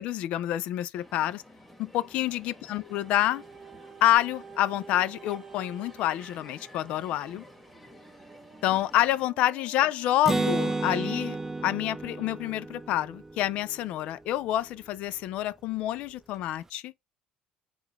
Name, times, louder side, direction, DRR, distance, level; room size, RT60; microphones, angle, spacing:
voice 1, 0.0-1.4 1.8-3.4 4.0-7.5 8.6-11.4 11.6-16.9, left 13 dB, 70° left, 0.4 m, -28 dB
Crowd, 1.0-9.3, left 1 dB, 5° left, 1.4 m, -52 dB
sound 1, 2.9-12.0 12.6-12.7, right 6 dB, 40° right, 0.8 m, -51 dB
Acoustic guitar, 10.3-13.9, right 3 dB, 20° right, 0.3 m, -31 dB
3.8 x 2.4 x 4.5 m
supercardioid pair, 90°, 2 cm